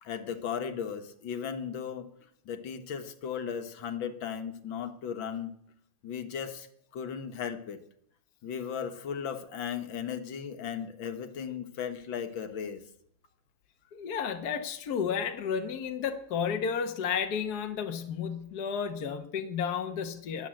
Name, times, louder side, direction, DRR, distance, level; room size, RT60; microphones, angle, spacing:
voice 1, 0.0-2.1 2.5-5.5 6.0-6.7 6.9-7.8 8.4-12.8, left 7 dB, 80° left, 8 dB, 2.1 m, -36 dB
voice 2, 13.9-20.5, left 7 dB, 55° left, 6 dB, 1.6 m, -32 dB
22.0 x 8.5 x 7.7 m, 0.71 s
omnidirectional pair, 2.1 m